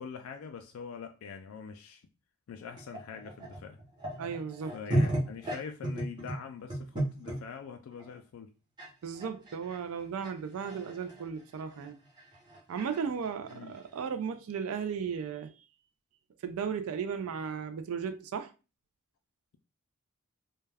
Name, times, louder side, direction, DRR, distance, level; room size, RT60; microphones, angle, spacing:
voice 1, 0.0-2.0 2.5-3.8 4.7-8.5 13.5-13.7, left 6 dB, 70° left, 0.3 m, -44 dB
sound 1, 2.7-7.4 7.9-8.1 8.8-8.9 9.1-14.0, right 1 dB, 20° right, 0.8 m, -34 dB
voice 2, 4.2-4.8 9.0-12.0 12.7-15.5 16.4-18.5, right 6 dB, 75° right, 0.3 m, -35 dB
2.2 x 2.1 x 3.3 m
head